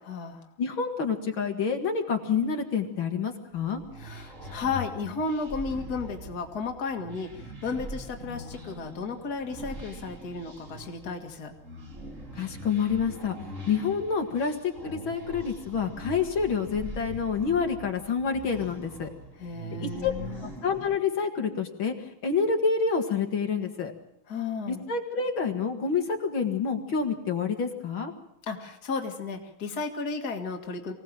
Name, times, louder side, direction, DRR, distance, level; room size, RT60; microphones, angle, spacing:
voice 1, 0.0-0.5 4.0-11.5 19.4-20.5 24.3-24.8 28.5-30.9, left 4 dB, 50° left, 3 dB, 2.3 m, -34 dB
voice 2, 0.6-3.8 12.4-13.4 13.7-19.1 20.0-20.1 20.4-21.9 22.2-23.9 24.7-28.1, left 5 dB, 75° left, 3 dB, 2.7 m, -28 dB
sound 1, 3.5-21.0, right 1 dB, 35° right, 2.9 m, -42 dB
25.0 x 17.5 x 7.5 m, 0.76 s
omnidirectional pair, 2.3 m